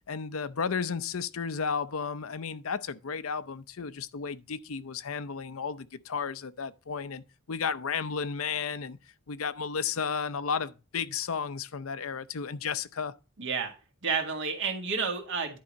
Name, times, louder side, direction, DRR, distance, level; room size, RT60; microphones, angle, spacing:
voice 1, 0.1-9.0 9.3-13.1, left 6 dB, 70° left, 0.6 m, -33 dB
voice 2, 13.4-13.7 14.0-15.6, right 5 dB, 60° right, 1.9 m, -30 dB
10.5 x 4.8 x 4.1 m
head